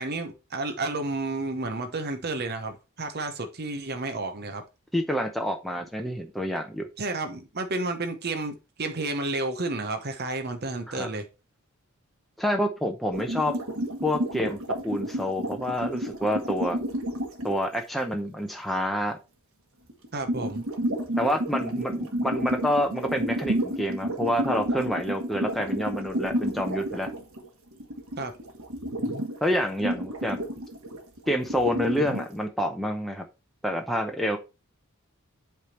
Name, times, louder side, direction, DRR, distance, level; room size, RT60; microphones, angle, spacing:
voice 1, 0.0-4.6 7.0-11.3 20.1-20.6 28.2-28.3, right 2 dB, 45° right, 0.9 m, -31 dB
voice 2, 4.9-6.9 10.9-11.1 12.4-13.5 14.0-14.6 14.8-16.8 17.4-19.2 21.2-27.1 29.4-30.4 31.3-33.2 33.6-34.4, equal, ahead, 0.6 m, -28 dB
sound 1, 13.1-17.6 19.9-27.5 27.7-29.4 29.8-32.2, right 1 dB, 65° right, 1.4 m, -30 dB
7.9 x 3.5 x 4.2 m
head